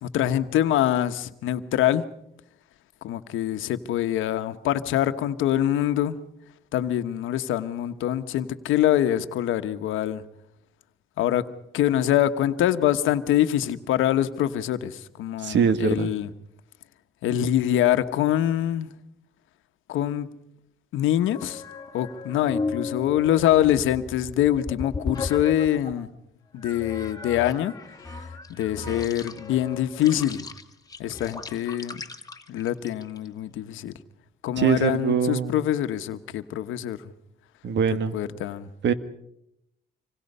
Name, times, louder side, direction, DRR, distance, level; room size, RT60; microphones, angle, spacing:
voice 1, 0.0-2.0 3.0-6.2 6.7-10.2 11.2-11.4 11.7-16.3 17.2-18.9 19.9-20.3 20.9-21.6 21.9-26.1 26.5-27.7 28.1-30.4 31.0-32.0 32.5-33.9 34.4-37.0 38.1-38.7, left 12 dB, 85° left, 10 dB, 1.2 m, -24 dB
voice 2, 15.4-16.1 34.6-35.6 37.6-38.1 38.8-38.9, right 7 dB, 65° right, 12 dB, 1.6 m, -23 dB
sound 1, 21.1-26.1 26.6-33.3, left 4 dB, 20° left, 2.1 m, -36 dB
26.0 x 25.0 x 5.5 m, 0.80 s
cardioid pair, 90°, 20 cm